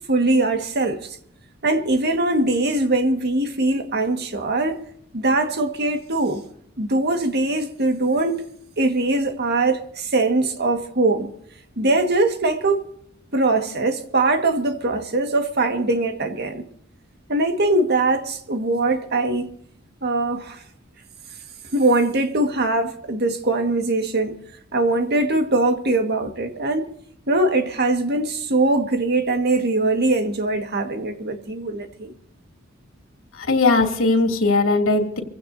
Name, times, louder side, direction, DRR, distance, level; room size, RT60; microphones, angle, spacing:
voice 1, 0.1-1.2 1.6-4.8 5.1-6.4 6.8-8.4 8.8-11.3 11.8-12.8 13.3-16.7 17.3-19.5 20.0-20.6 21.7-24.4 24.7-26.9 27.3-32.1, right 2 dB, 55° right, 1.8 m, -21 dB
voice 2, 33.4-35.2, left 3 dB, 80° left, 2.9 m, -19 dB
25.5 x 16.0 x 2.8 m
head